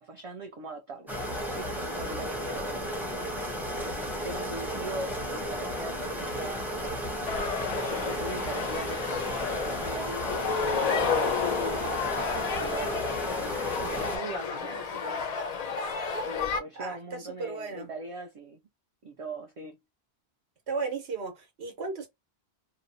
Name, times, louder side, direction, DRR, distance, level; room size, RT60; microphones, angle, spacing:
voice 1, 0.0-1.2 1.5-3.3 3.8-7.1 7.9-11.8 12.6-13.0 13.6-15.2 16.2-18.6 19.0-19.8, right 2 dB, 55° right, 0.4 m, -41 dB
sound 1, 1.1-14.2, equal, ahead, 0.6 m, -34 dB
sound 2, 7.3-16.6, left 5 dB, 55° left, 0.5 m, -31 dB
voice 2, 16.7-17.9 20.7-22.1, right 4 dB, 90° right, 1.2 m, -35 dB
2.8 x 2.0 x 2.5 m
omnidirectional pair, 1.1 m